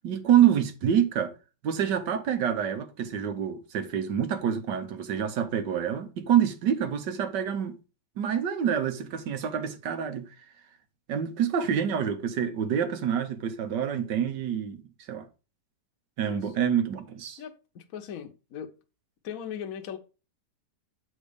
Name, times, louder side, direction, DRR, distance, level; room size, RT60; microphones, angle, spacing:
voice 1, 0.0-1.3 1.6-7.7 8.2-10.3 11.1-14.8 15.1-15.3 16.2-17.4, right 9 dB, 75° right, 1.6 m, -27 dB
voice 2, 17.4-18.7 19.2-20.0, left 8 dB, 60° left, 1.2 m, -39 dB
8.1 x 4.2 x 5.0 m
omnidirectional pair, 1.9 m